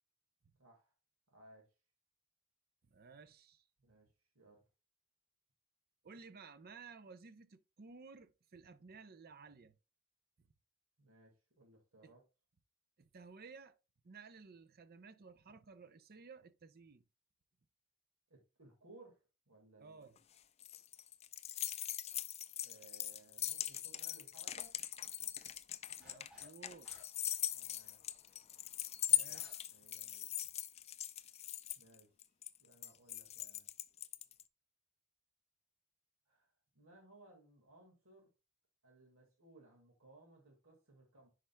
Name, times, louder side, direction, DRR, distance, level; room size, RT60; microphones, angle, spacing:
voice 1, 0.6-0.9 1.3-1.7 3.8-4.1 4.4-4.6 11.0-12.2 18.3-19.2 19.5-20.1 22.6-24.7 27.5-28.0 29.7-30.3 31.8-32.1 32.6-33.7 36.3-38.3 38.8-41.3, right 2 dB, 85° right, 1.8 m, -62 dB
voice 2, 2.8-3.7 6.0-9.8 10.4-10.5 12.0-12.1 13.0-13.7 14.0-17.0 19.8-20.2 26.0-26.9 29.1-29.6, right 4 dB, 45° right, 0.6 m, -56 dB
sound 1, 20.2-34.4, left 11 dB, 30° left, 0.3 m, -40 dB
sound 2, 26.0-26.6 26.8-29.7 30.1-30.2 30.8-31.1, left 1 dB, 5° right, 4.0 m, -63 dB
9.9 x 5.0 x 2.2 m
head